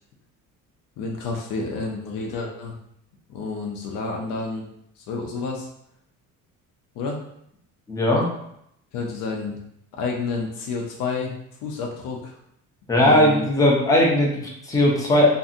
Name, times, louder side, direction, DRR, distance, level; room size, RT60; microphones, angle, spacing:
voice 1, 1.0-2.8 3.3-4.6 5.0-5.7 7.0-7.2 8.9-9.6 10.0-11.3 11.6-12.4 13.0-13.5, left 4 dB, 75° left, 0 dB, 0.6 m, -29 dB
voice 2, 7.9-8.3 12.9-15.3, left 1 dB, 10° left, -3 dB, 0.5 m, -18 dB
2.6 x 2.6 x 2.4 m, 0.74 s
cardioid pair, 165°, 33 cm